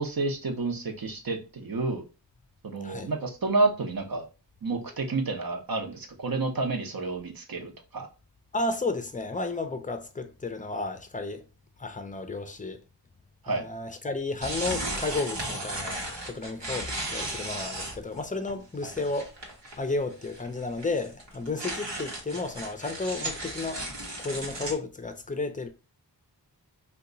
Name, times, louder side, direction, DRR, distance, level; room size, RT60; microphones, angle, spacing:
voice 1, 0.0-2.0 2.6-4.3 4.6-8.1 13.4-13.6 18.8-18.9, right 3 dB, 55° right, 0.8 m, -29 dB
voice 2, 8.5-11.4 11.8-12.8 13.5-19.3 19.8-23.8 24.2-25.7, left 3 dB, 20° left, 0.5 m, -32 dB
sound 1, 14.4-18.2 18.5-18.6 18.9-19.9 20.2-24.7, right 1 dB, 90° right, 1.0 m, -35 dB
2.8 x 2.3 x 3.8 m
wide cardioid pair, 75°, 41 cm